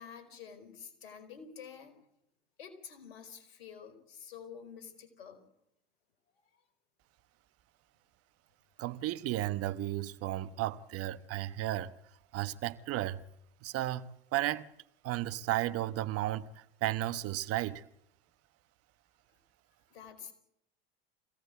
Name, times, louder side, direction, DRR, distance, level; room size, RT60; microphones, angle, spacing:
voice 1, 0.0-2.0 2.6-5.4 19.9-20.3, left 7 dB, 80° left, 4.7 m, -49 dB
voice 2, 8.8-11.9 12.3-13.2 13.6-14.7 15.0-17.8, right 15 dB, 50° right, 1.2 m, -34 dB
24.5 x 17.0 x 8.3 m
hypercardioid pair, 80°, 30 cm